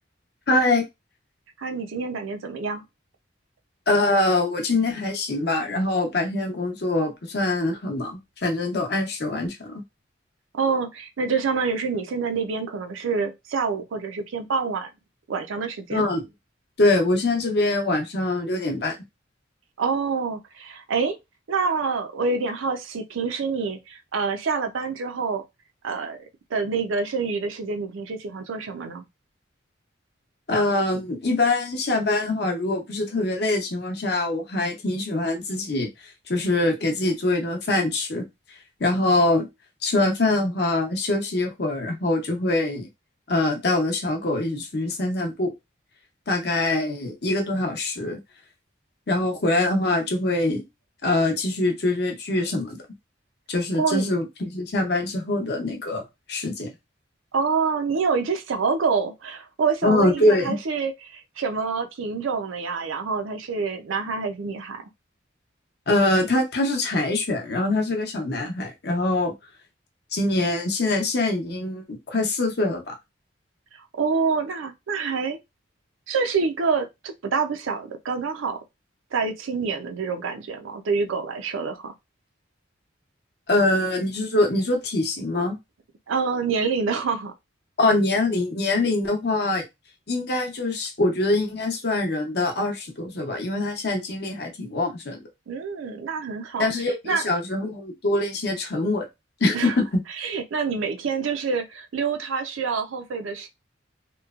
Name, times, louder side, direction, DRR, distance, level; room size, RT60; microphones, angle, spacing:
voice 1, 0.5-0.8 3.9-9.8 15.9-16.2 16.8-19.0 30.5-38.2 38.8-39.5 39.8-42.9 43.3-45.5 46.3-48.2 49.1-50.6 51.0-52.8 53.5-56.0 56.3-56.7 59.8-60.6 65.9-69.3 70.1-72.9 83.5-85.6 87.8-89.6 90.1-95.2 96.6-99.1 99.4-100.0, left 2 dB, 55° left, 0.7 m, -24 dB
voice 2, 1.6-2.8 10.5-14.9 15.3-16.0 19.8-21.2 21.5-25.4 25.8-29.0 53.8-54.1 57.3-64.8 74.0-75.4 76.1-78.6 79.1-81.9 86.1-87.3 95.5-96.7 97.1-97.2 99.5-99.7 100.2-103.5, right 5 dB, 85° right, 0.5 m, -27 dB
3.0 x 2.1 x 2.3 m
head